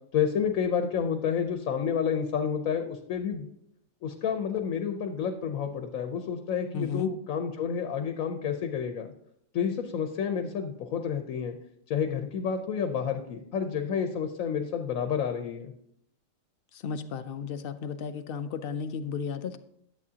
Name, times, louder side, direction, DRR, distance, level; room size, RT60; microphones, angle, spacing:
voice 1, 0.1-3.5 4.0-9.1 9.5-11.5 11.9-15.7, left 7 dB, 80° left, 6 dB, 1.1 m, -30 dB
voice 2, 6.7-7.1 16.7-19.6, left 6 dB, 60° left, 11 dB, 0.6 m, -34 dB
11.0 x 7.8 x 2.8 m, 0.73 s
omnidirectional pair, 1.4 m